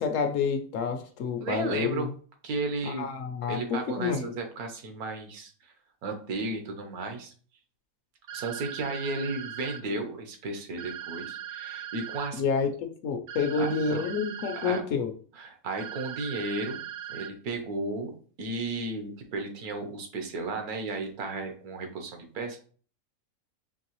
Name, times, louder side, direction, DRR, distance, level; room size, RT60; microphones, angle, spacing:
voice 1, 0.0-2.1 2.9-4.3 12.4-15.1, left 5 dB, 70° left, 6 dB, 0.9 m, -29 dB
voice 2, 1.4-2.1 2.4-3.1 3.5-5.7 6.0-7.3 8.3-12.4 13.5-14.0 14.6-14.8 15.3-16.8 17.1-18.1 18.4-22.6, right 3 dB, 80° right, 4 dB, 1.3 m, -34 dB
sound 1, 8.3-9.8 10.8-12.3 13.3-14.8 15.8-17.3, right 10 dB, 65° right, 0.7 m, -39 dB
4.6 x 3.1 x 3.0 m, 0.43 s
omnidirectional pair, 1.5 m